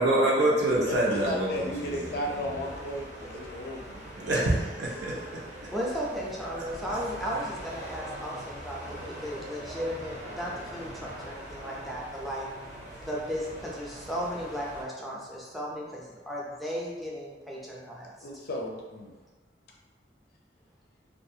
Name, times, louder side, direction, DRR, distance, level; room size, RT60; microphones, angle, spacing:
voice 1, 0.0-2.1 4.2-5.4, right 1 dB, 75° right, -5 dB, 0.7 m, -26 dB
sound 1, 0.7-14.8, equal, 40° right, 0.7 m, -43 dB
voice 2, 0.8-4.1 18.2-19.1, equal, 60° left, -1 dB, 0.5 m, -35 dB
voice 3, 5.7-12.5 13.0-18.1, equal, ahead, -5 dB, 0.4 m, -35 dB
2.4 x 2.3 x 2.7 m, 1.3 s
head